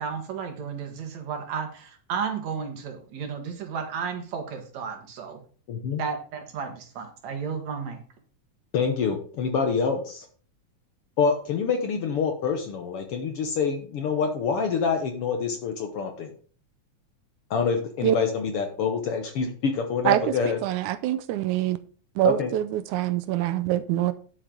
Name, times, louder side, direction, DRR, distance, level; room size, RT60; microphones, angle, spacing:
voice 1, 0.0-5.4 6.0-8.0, right 6 dB, 65° right, 2.8 m, -33 dB
voice 2, 5.7-6.0 8.7-10.3 11.2-16.3 17.5-20.6 22.2-22.5, left 5 dB, 60° left, 1.6 m, -26 dB
voice 3, 20.6-21.8 22.2-24.1, right 13 dB, 85° right, 2.1 m, -24 dB
10.0 x 7.7 x 3.8 m
omnidirectional pair, 3.5 m